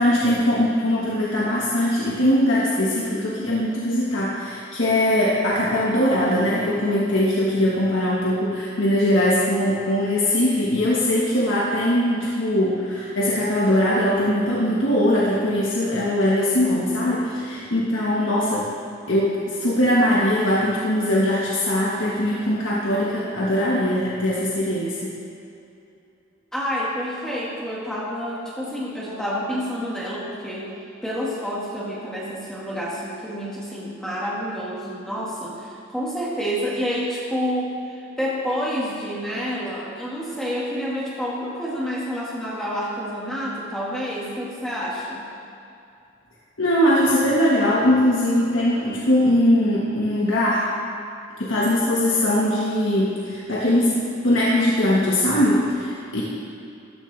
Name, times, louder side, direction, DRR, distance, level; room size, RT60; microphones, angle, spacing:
voice 1, 0.0-18.7 19.1-25.1 46.6-50.7 51.4-56.2, left 1 dB, 70° left, -6 dB, 1.6 m, -21 dB
voice 2, 26.5-30.7 31.0-45.2, equal, 5° left, -7 dB, 1.9 m, -28 dB
14.0 x 13.5 x 3.4 m, 2.6 s
head